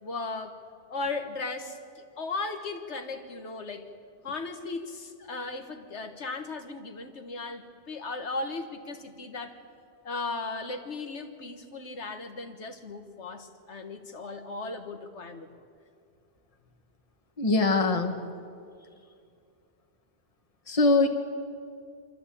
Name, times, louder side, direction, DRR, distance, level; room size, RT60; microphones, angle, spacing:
voice 1, 0.0-0.6 0.9-3.9 4.2-9.5 10.0-15.6, left 3 dB, 85° left, 7 dB, 1.8 m, -36 dB
voice 2, 17.4-18.1 20.7-21.1, left 3 dB, 30° left, 5 dB, 1.4 m, -22 dB
26.0 x 13.0 x 8.4 m, 2.3 s
omnidirectional pair, 1.1 m